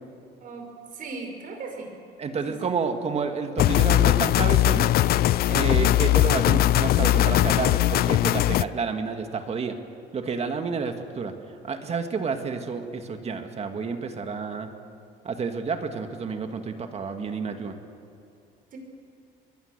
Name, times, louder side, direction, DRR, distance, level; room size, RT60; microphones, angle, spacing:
voice 1, 0.9-2.0 2.3-2.7 18.7-18.8, right 3 dB, 55° right, 3 dB, 5.4 m, -38 dB
voice 2, 2.2-4.9 5.5-9.8 10.1-11.3 11.6-14.7 15.2-17.7, right 5 dB, 40° right, 6 dB, 2.0 m, -30 dB
sound 1, 3.6-8.6, left 14 dB, 65° left, 0.5 m, -20 dB
24.5 x 21.0 x 6.8 m, 2.6 s
cardioid pair, 110°, 17 cm